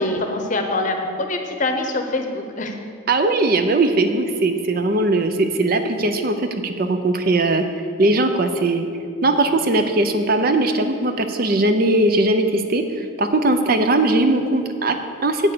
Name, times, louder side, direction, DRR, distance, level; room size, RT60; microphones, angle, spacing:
voice 1, 0.0-2.7, left 2 dB, 40° left, 5 dB, 0.8 m, -24 dB
voice 2, 3.1-7.6 8.0-8.9 9.2-15.5, right 2 dB, 45° right, 7 dB, 0.6 m, -19 dB
8.7 x 6.2 x 6.8 m, 2.4 s
head